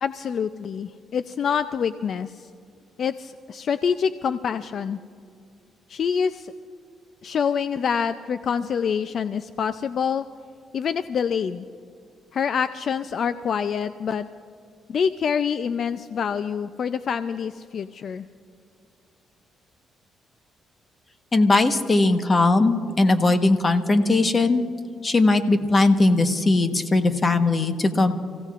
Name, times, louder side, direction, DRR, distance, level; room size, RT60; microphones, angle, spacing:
voice 1, 0.0-2.5 3.0-5.0 5.9-6.5 7.2-10.3 10.7-11.7 12.3-14.3 14.9-18.3, left 7 dB, 55° left, 11 dB, 0.4 m, -26 dB
voice 2, 21.3-24.7 25.0-28.1, left 2 dB, 30° left, 7 dB, 1.2 m, -19 dB
30.0 x 16.0 x 2.5 m, 2.4 s
cardioid pair, 90°, 0 cm